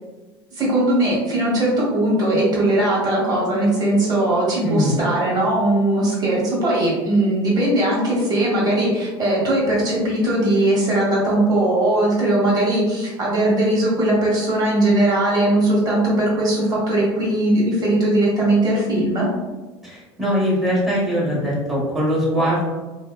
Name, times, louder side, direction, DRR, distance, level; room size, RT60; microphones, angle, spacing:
voice 1, 0.5-19.3, right 1 dB, 30° right, -5 dB, 1.3 m, -19 dB
voice 2, 19.8-22.7, equal, ahead, -8 dB, 1.3 m, -21 dB
2.7 x 2.2 x 2.3 m, 1.2 s
hypercardioid pair, 75°, 13 cm